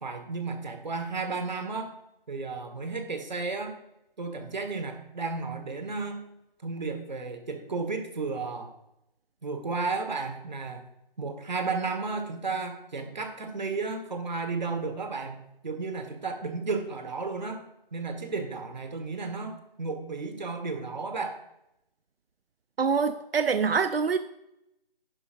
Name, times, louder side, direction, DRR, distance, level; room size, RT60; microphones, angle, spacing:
voice 1, 0.0-1.9 2.3-3.8 4.2-6.2 6.6-8.7 9.4-10.9 11.2-17.6 17.9-21.4, right 4 dB, 50° right, 7 dB, 1.5 m, -33 dB
voice 2, 22.8-24.2, right 5 dB, 90° right, 12 dB, 0.6 m, -25 dB
10.5 x 10.5 x 2.5 m, 0.86 s
figure-of-eight pair, 170°, 29 cm